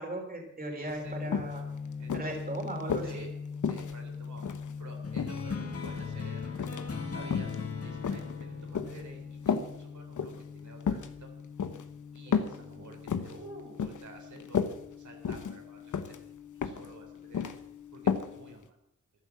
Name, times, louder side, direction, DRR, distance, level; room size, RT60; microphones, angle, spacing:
voice 1, 0.0-1.7 2.1-3.1 12.3-13.0, right 1 dB, 30° right, 2 dB, 3.6 m, -38 dB
voice 2, 0.7-1.5 2.0-2.4 3.0-3.3 3.6-4.4 4.8-7.6 7.8-11.3 12.1-14.7 15.0-16.2 16.6-17.5 17.9-18.8, right 2 dB, 70° right, 1 dB, 4.0 m, -51 dB
sound 1, 0.9-1.0 1.3-1.6 2.1-3.1 3.6-4.7 5.1-6.1 6.5-6.9 7.2-7.6 8.0-9.0 9.5-9.7 10.1-10.4 10.8-11.1 11.6-11.8 12.3-12.6 12.9-13.4 13.8-14.1 14.4-14.7 15.2-15.6 15.9-16.2 16.6-16.9 17.1-17.6 18.1-18.3 18.6-18.7, left 6 dB, 75° left, 1.1 m, -32 dB
sound 2, 1.0-18.6, left 5 dB, 25° left, 0.9 m, -43 dB
sound 3, 5.0-10.0, left 5 dB, 50° left, 2.0 m, -40 dB
14.0 x 11.5 x 7.1 m, 0.82 s
wide cardioid pair, 95°, 30 cm